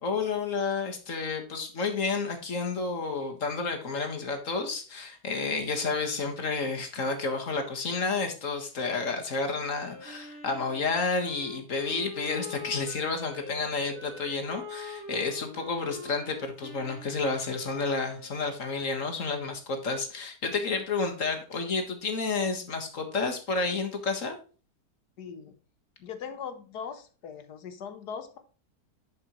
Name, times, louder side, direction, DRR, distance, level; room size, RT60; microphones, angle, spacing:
voice 1, 0.0-24.4, left 4 dB, 50° left, 4 dB, 1.8 m, -30 dB
Wind instrument woodwind instrument, 9.5-18.3, left 2 dB, 10° right, 4.7 m, -43 dB
voice 2, 25.2-25.6 26.0-28.4, left 7 dB, 70° left, 8 dB, 1.7 m, -40 dB
11.0 x 5.4 x 3.0 m, 0.37 s
omnidirectional pair, 1.8 m